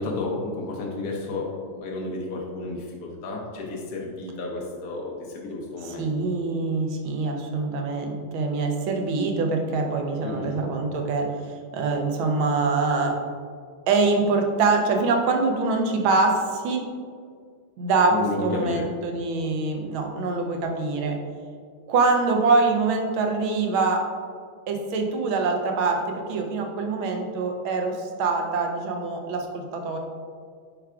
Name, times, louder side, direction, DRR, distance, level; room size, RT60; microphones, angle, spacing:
voice 1, 0.0-6.1 10.2-10.6 18.1-18.9, left 2 dB, 65° left, -2 dB, 1.0 m, -32 dB
voice 2, 5.8-13.1 13.9-16.9 17.8-21.2 21.9-24.0 24.7-30.0, right 3 dB, 75° right, 3 dB, 1.5 m, -24 dB
9.0 x 4.6 x 2.4 m, 2.1 s
omnidirectional pair, 2.4 m